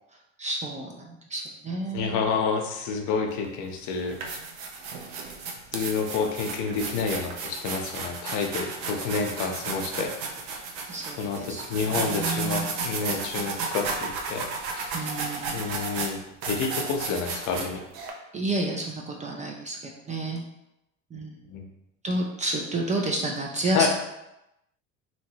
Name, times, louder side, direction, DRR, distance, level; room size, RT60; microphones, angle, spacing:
voice 1, 0.4-2.2 10.9-12.7 14.9-15.7 18.3-20.4 21.1-21.5 22.0-23.9, right 2 dB, 20° right, 0 dB, 0.4 m, -30 dB
voice 2, 1.9-4.4 5.7-10.1 11.2-14.9 15.5-16.2 16.5-17.8 21.5-21.7 23.7-23.9, left 5 dB, 50° left, 3 dB, 0.7 m, -29 dB
sound 1, 3.3-3.5 4.0-18.1, right 4 dB, 75° right, 0.7 m, -33 dB
2.9 x 2.8 x 2.8 m, 0.89 s
hypercardioid pair, 85°, 36 cm